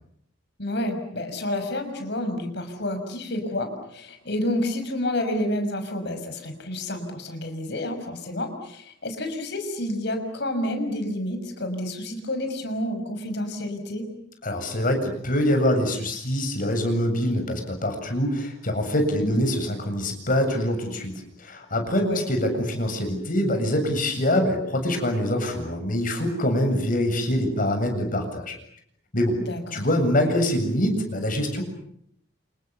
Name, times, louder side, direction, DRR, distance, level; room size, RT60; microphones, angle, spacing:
voice 1, 0.6-14.1 19.2-19.4 22.0-22.2 29.4-29.8, left 1 dB, 65° left, 7 dB, 6.3 m, -29 dB
voice 2, 14.4-21.1 21.4-28.5 29.1-29.3 29.7-31.6, left 1 dB, 45° left, 5 dB, 7.8 m, -24 dB
29.5 x 28.5 x 6.9 m, 0.68 s
head